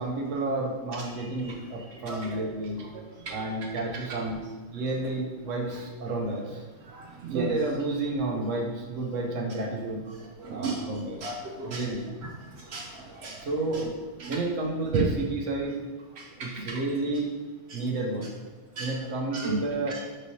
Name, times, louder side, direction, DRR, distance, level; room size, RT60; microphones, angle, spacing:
voice 1, 0.0-2.8 3.3-4.4 4.7-6.6 7.3-10.0 10.5-11.2 11.6-12.3 13.4-13.9 14.3-15.7 16.4-17.3 17.7-18.3 18.8-20.0, right 2 dB, 80° right, 1 dB, 1.1 m, -31 dB
voice 2, 2.1-2.4 3.3-3.4 6.9-7.5 10.4-10.9 11.2-11.8 12.7-13.9 14.2-14.4 14.9-15.0 16.6-16.8 17.7-17.8 18.8-18.9 19.3-19.6 19.9-20.0, right 4 dB, 65° right, 0 dB, 0.8 m, -33 dB
5.3 x 3.2 x 2.7 m, 1.3 s
omnidirectional pair, 1.3 m